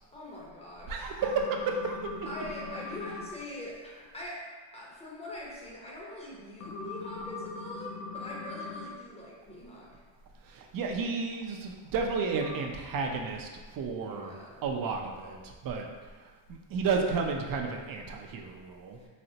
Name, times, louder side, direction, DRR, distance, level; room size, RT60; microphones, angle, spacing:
voice 1, 0.1-1.1 2.2-10.0 14.0-14.7 19.0-19.1, left 1 dB, 15° left, -5 dB, 0.8 m, -43 dB
voice 2, 0.9-2.1 10.4-14.3 14.6-15.9 16.2-19.0, right 4 dB, 45° right, 2 dB, 0.5 m, -32 dB
sound 1, 1.2-3.3 6.6-8.9 12.4-12.6, left 4 dB, 35° left, 0.4 m, -40 dB
4.1 x 2.0 x 2.7 m, 1.4 s
cardioid pair, 100°, 49 cm